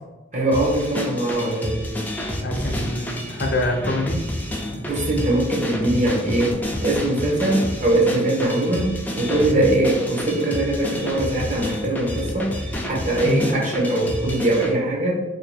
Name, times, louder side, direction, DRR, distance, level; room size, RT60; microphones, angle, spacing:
voice 1, 0.3-1.9 4.9-12.6 12.8-15.2, right 1 dB, 40° right, -2 dB, 0.8 m, -22 dB
sound 1, 0.5-14.7, left 1 dB, 10° left, 0.3 m, -29 dB
voice 2, 2.4-4.2 4.7-4.8 9.5-9.7 13.2-13.5, left 1 dB, 60° left, 2 dB, 0.6 m, -25 dB
2.6 x 2.4 x 4.1 m, 1.1 s
head